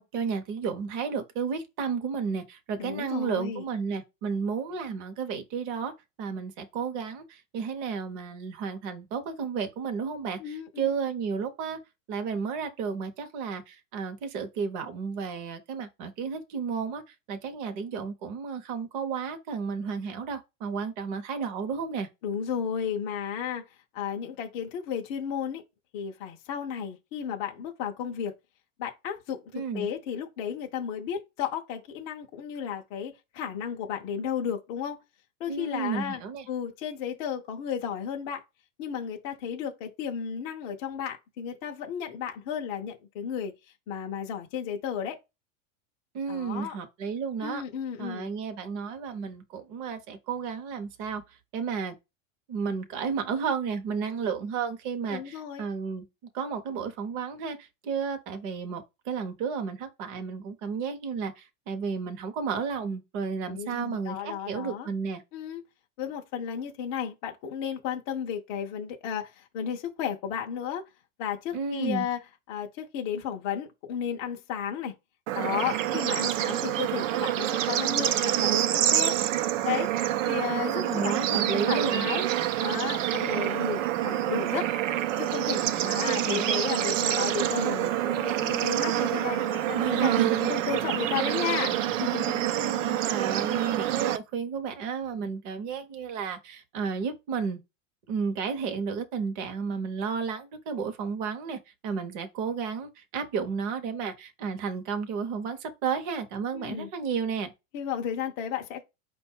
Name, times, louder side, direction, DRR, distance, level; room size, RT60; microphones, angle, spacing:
voice 1, 0.0-5.9 6.2-11.8 12.1-22.1 29.5-29.9 35.5-36.5 46.1-47.6 48.0-51.9 52.5-56.1 56.3-65.2 71.5-72.1 80.8-82.1 86.0-86.5 89.7-90.5 92.5-97.6 98.1-107.5, right 6 dB, 35° right, 0.7 m, -32 dB
voice 2, 2.8-3.6 10.4-10.9 22.2-23.6 23.9-25.6 25.9-28.3 28.8-35.0 35.4-36.2 36.5-38.4 38.8-43.5 43.9-45.2 46.3-46.8 47.4-48.3 55.1-55.6 63.5-64.9 65.3-65.6 66.0-70.8 71.2-72.2 72.5-74.9 75.4-79.2 79.6-82.3 82.6-84.7 85.2-90.1 90.5-92.5 106.5-106.9 107.7-108.8, left 8 dB, 25° left, 0.4 m, -33 dB
Bird / Insect / Frog, 75.3-94.2, right 13 dB, 75° right, 0.6 m, -27 dB
5.1 x 2.2 x 4.3 m
supercardioid pair, 160°, 38 cm